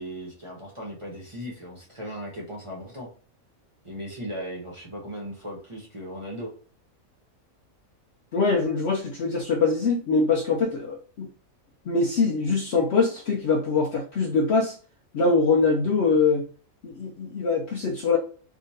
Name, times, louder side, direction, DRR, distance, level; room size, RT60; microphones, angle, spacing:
voice 1, 0.0-3.1 3.8-6.5, equal, 25° right, -4 dB, 0.7 m, -37 dB
voice 2, 8.3-11.3 11.9-14.8 15.1-16.5 16.8-18.2, left 4 dB, 65° left, 1 dB, 0.7 m, -23 dB
3.4 x 2.8 x 2.7 m, 0.40 s
omnidirectional pair, 1.5 m